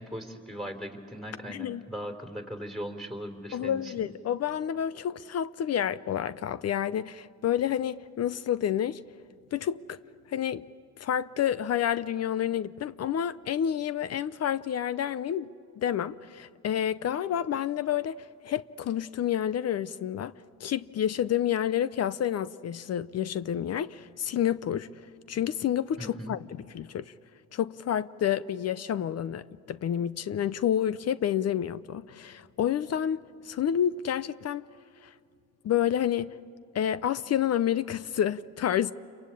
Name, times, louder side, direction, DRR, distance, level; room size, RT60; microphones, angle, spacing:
voice 1, 0.0-3.9 26.0-26.3, equal, ahead, 3.5 m, -39 dB
voice 2, 1.5-1.8 3.5-9.0 9.5-10.0 10.3-10.6 11.0-20.3 20.6-24.9 25.3-26.4 26.7-27.0 27.5-34.7 35.0-35.1 35.6-36.3 36.7-38.9, left 10 dB, 55° left, 0.7 m, -29 dB
28.5 x 23.5 x 8.5 m
cardioid pair, 90°, 30 cm